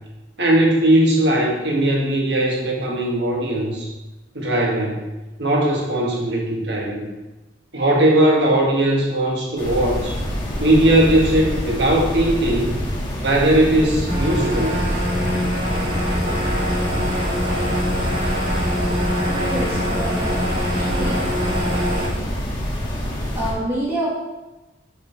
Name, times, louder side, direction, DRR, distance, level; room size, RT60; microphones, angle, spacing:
voice 1, 0.4-3.9 4.4-5.0 5.4-7.1 7.7-10.2 10.6-12.7 13.2-14.7, right 1 dB, 75° right, -1 dB, 1.6 m, -19 dB
sound 1, 9.6-23.5, equal, 25° left, 1.5 m, -26 dB
sound 2, 14.1-22.1, equal, 55° right, 2.2 m, -24 dB
voice 2, 19.3-21.3 23.3-24.1, right 1 dB, 30° right, -10 dB, 1.5 m, -27 dB
6.7 x 6.5 x 3.4 m, 1.1 s
head